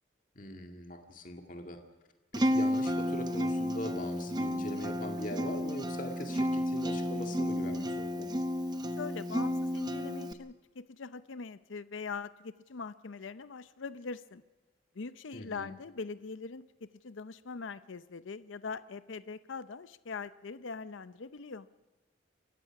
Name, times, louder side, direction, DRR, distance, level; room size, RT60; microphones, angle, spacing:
voice 1, 0.4-1.8 2.3-8.3 15.3-15.7, left 1 dB, 40° left, 4 dB, 2.2 m, -41 dB
Acoustic guitar, 2.3-10.3, equal, 20° right, 0.8 m, -32 dB
voice 2, 9.0-14.4 15.0-16.6 17.0-21.7, left 4 dB, 70° left, 14 dB, 0.6 m, -42 dB
28.5 x 15.5 x 5.9 m, 1.2 s
head